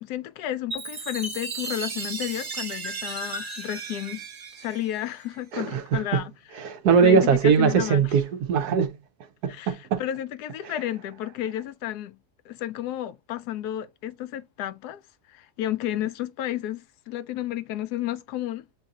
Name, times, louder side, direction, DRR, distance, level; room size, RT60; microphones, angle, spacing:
voice 1, 0.0-4.2 4.6-6.3 7.0-8.1 9.5-12.2 12.5-15.0 15.3-18.7, left 12 dB, 80° left, 1.1 m, -32 dB
Chime, 0.7-5.4, right 4 dB, 40° right, 0.8 m, -35 dB
voice 2, 5.5-6.2 6.6-9.0 9.4-10.0 10.6-10.7, right 6 dB, 75° right, 1.3 m, -21 dB
7.4 x 2.7 x 2.4 m
omnidirectional pair, 1.7 m